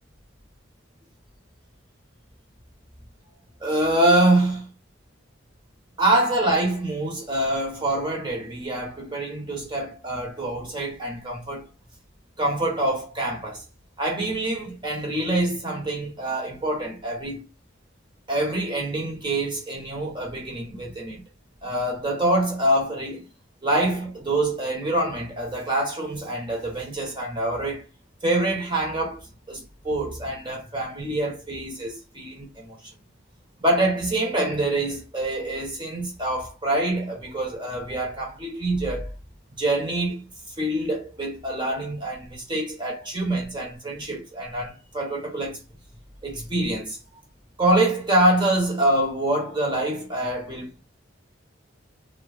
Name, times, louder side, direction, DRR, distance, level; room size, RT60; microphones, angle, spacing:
voice 1, 3.6-4.7 6.0-11.7 12.4-13.6 14.0-17.4 18.3-21.2 21.6-23.2 23.6-27.9 28.2-32.8 33.6-39.1 39.6-40.2 40.6-45.6 46.2-47.0 47.6-50.8, right 1 dB, 25° right, 1.1 m, -25 dB
3.4 x 2.3 x 2.4 m
head